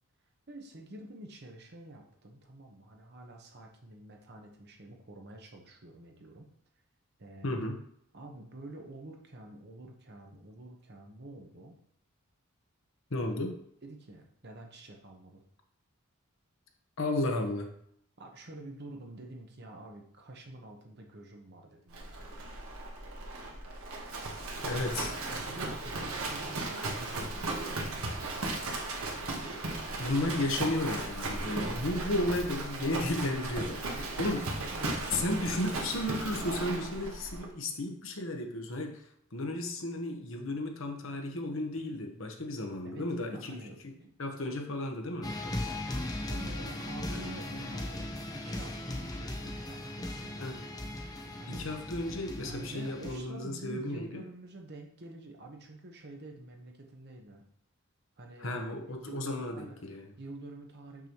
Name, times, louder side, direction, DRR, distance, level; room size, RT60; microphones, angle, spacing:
voice 1, 0.5-6.5 7.2-7.6 8.1-11.8 13.8-15.4 18.2-22.3 24.8-28.7 33.9-36.1 42.8-44.1 46.1-48.1 48.3-50.6 51.4-51.7 52.4-57.4 58.2-61.1, right 2 dB, 50° right, 2 dB, 1.1 m, -48 dB
voice 2, 7.4-7.7 13.1-13.6 17.0-17.7 24.6-25.1 30.0-34.5 35.1-43.9 44.2-45.3 47.1-47.2 50.4-50.6 51.5-54.2 58.4-60.1, left 1 dB, 65° left, 3 dB, 1.1 m, -34 dB
Livestock farm animals working animals, 21.9-37.5, right 2 dB, 75° right, 1.4 m, -36 dB
sound 1, 45.2-53.2, left 1 dB, 15° left, 0.7 m, -38 dB
6.8 x 5.9 x 3.0 m, 0.69 s
head